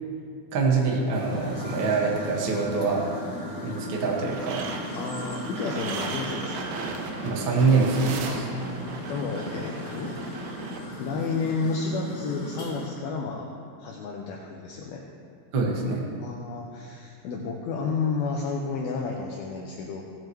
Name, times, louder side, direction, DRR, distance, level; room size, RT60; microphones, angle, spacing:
voice 1, 0.5-3.0 3.4-4.6 7.2-8.5 15.5-16.0, right 4 dB, 70° right, -2 dB, 1.1 m, -25 dB
sound 1, 1.1-12.9, equal, 40° left, 1.7 m, -37 dB
sound 2, 4.3-10.8, right 4 dB, 90° right, 3.2 m, -36 dB
voice 2, 5.0-6.7 8.3-10.7 11.0-13.5 13.8-15.0 16.2-20.0, left 4 dB, 75° left, -1 dB, 2.3 m, -31 dB
17.5 x 9.0 x 3.1 m, 2.4 s
omnidirectional pair, 5.0 m